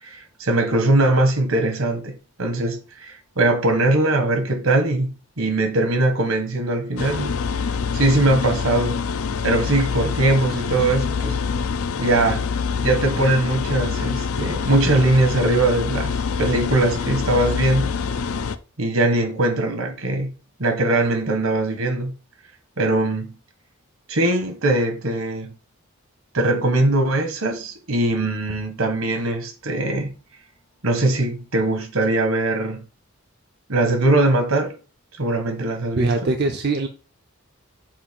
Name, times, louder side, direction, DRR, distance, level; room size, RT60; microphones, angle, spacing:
voice 1, 0.0-7.3 7.9-9.0 9.4-11.4 12.0-12.4 12.8-16.1 16.4-17.9 18.8-20.3 20.6-22.1 22.8-23.3 24.1-25.5 26.3-30.1 30.8-32.8 33.7-34.7 35.2-36.3, right 2 dB, 75° right, 1.3 m, -21 dB
sound 1, 7.0-18.6, left 5 dB, 80° left, 0.5 m, -25 dB
voice 2, 36.0-36.9, right 3 dB, 50° right, 0.5 m, -22 dB
7.3 x 2.6 x 5.2 m
head